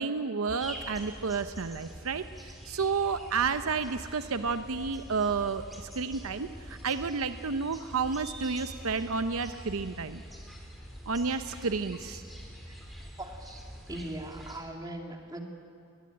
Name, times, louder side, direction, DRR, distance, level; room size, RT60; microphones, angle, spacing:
voice 1, 0.0-10.2 11.1-12.2, right 5 dB, 85° right, 10 dB, 0.7 m, -31 dB
sound 1, 0.6-14.6, equal, ahead, 3.5 m, -45 dB
voice 2, 13.0-13.6 13.9-15.4, right 1 dB, 20° right, 2 dB, 2.4 m, -40 dB
21.5 x 20.0 x 8.7 m, 2.3 s
head